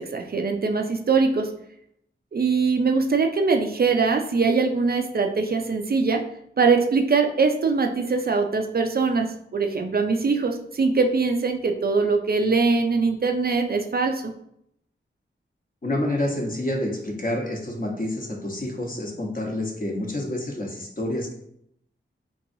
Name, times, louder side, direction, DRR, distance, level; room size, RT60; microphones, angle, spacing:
voice 1, 0.0-1.5 2.3-6.3 6.6-14.3, right 4 dB, 50° right, 4 dB, 0.4 m, -22 dB
voice 2, 15.8-21.3, left 1 dB, 40° left, 0 dB, 0.9 m, -28 dB
3.8 x 3.0 x 2.6 m, 0.74 s
wide cardioid pair, 60°, 21 cm